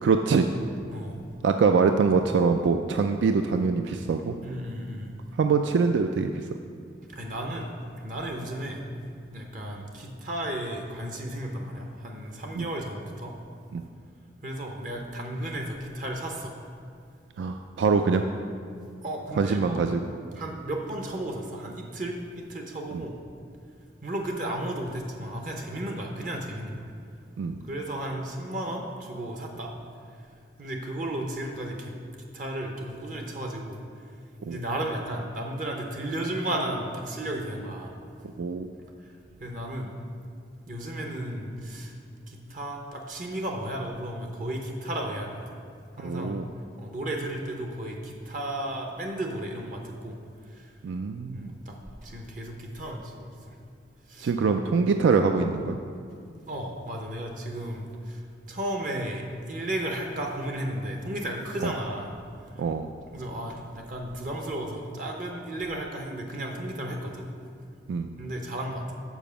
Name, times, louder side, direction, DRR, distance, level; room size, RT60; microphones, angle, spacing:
voice 1, 0.0-0.5 1.4-4.3 5.4-6.3 12.5-12.7 13.7-13.8 17.4-18.3 19.4-20.0 27.4-27.6 34.4-34.6 38.4-38.7 46.0-46.5 50.8-51.5 54.2-55.8 61.6-61.7 62.6-62.9 67.9-68.1, right 5 dB, 70° right, 6 dB, 0.3 m, -24 dB
voice 2, 0.9-1.3 4.4-5.1 7.1-9.0 9.3-13.4 14.4-16.6 19.0-19.8 20.3-23.2 24.0-26.9 27.6-29.7 30.1-30.3 30.6-31.9 32.3-33.8 34.4-37.9 39.0-39.9 40.6-42.0 42.3-45.6 45.9-46.4 46.8-50.2 50.4-50.7 51.3-53.6 54.1-54.3 56.5-62.2 62.4-62.7 63.1-67.3 68.2-68.9, right 1 dB, 45° right, 2 dB, 0.7 m, -34 dB
7.1 x 5.0 x 6.8 m, 2.4 s
head